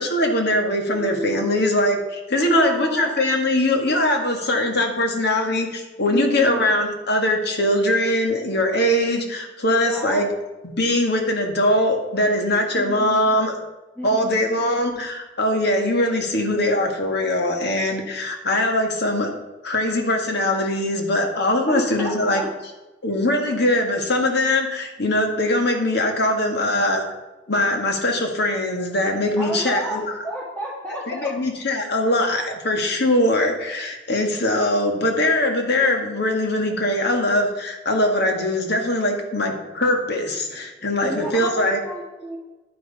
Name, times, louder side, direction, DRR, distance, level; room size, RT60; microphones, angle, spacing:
voice 1, 0.0-10.3 10.6-13.6 14.0-19.3 19.6-22.4 23.0-27.0 27.5-30.1 31.1-41.8, left 1 dB, 60° left, 3 dB, 1.9 m, -21 dB
voice 2, 0.9-1.6 2.4-3.3 6.1-6.8 9.9-10.2 12.8-13.4 14.0-14.7 21.7-22.5 29.4-31.3 41.0-42.4, right 1 dB, 10° left, -8 dB, 2.2 m, -31 dB
10.5 x 9.5 x 4.2 m, 1.1 s
head